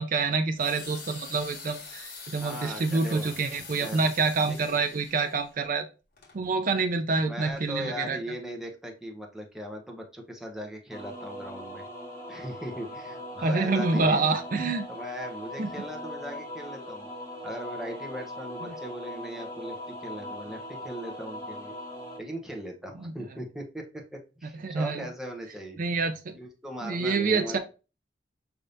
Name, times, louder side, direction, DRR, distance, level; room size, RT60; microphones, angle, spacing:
voice 1, 0.0-5.9 6.3-8.2 13.4-14.8 15.6-15.7 22.9-23.1 24.6-25.1 25.8-26.4 26.8-27.6, right 4 dB, 50° right, 8 dB, 0.5 m, -27 dB
sound 1, 0.6-5.5 6.2-6.3, left 4 dB, 60° left, 1.8 m, -44 dB
voice 2, 2.4-3.5 3.8-4.1 4.5-4.6 7.2-11.8 12.3-14.3 14.9-17.1 17.4-21.7 22.2-26.0 26.3-27.6, equal, 5° right, 0 dB, 0.8 m, -39 dB
sound 2, 10.9-22.2, left 1 dB, 15° left, 1.5 m, -40 dB
5.3 x 3.4 x 2.6 m, 0.32 s
head